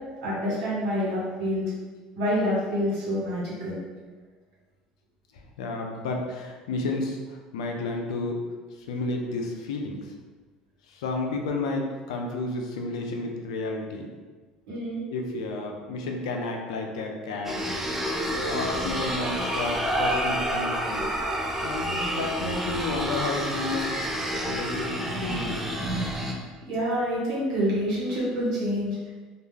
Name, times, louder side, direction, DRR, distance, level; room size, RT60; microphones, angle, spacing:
voice 1, 0.2-1.6 2.1-3.8 14.7-15.0 26.7-28.9, equal, 80° right, -7 dB, 1.2 m, -27 dB
voice 2, 5.3-8.4 8.7-10.1 10.9-14.1 15.1-17.7 18.4-21.1 21.6-24.0 24.4-26.1, left 3 dB, 85° left, 2 dB, 0.4 m, -32 dB
sound 1, 17.4-26.3, equal, 10° right, 0.4 m, -29 dB
2.3 x 2.1 x 3.2 m, 1.4 s
hypercardioid pair, 75°, 3 cm